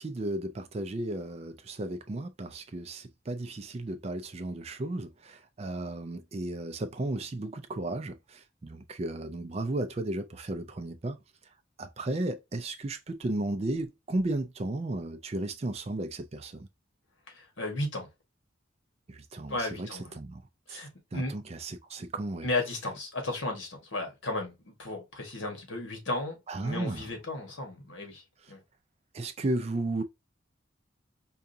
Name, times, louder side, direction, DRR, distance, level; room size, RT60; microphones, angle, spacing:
voice 1, 0.0-11.2 11.8-16.7 19.1-19.9 20.2-20.4 20.7-20.8 21.1-22.5 26.5-27.0 29.1-30.0, right 2 dB, 30° right, 0.4 m, -34 dB
voice 2, 17.3-18.1 19.5-20.1 20.7-21.4 22.4-28.6, left 2 dB, 65° left, 1.3 m, -35 dB
4.8 x 2.4 x 2.6 m
head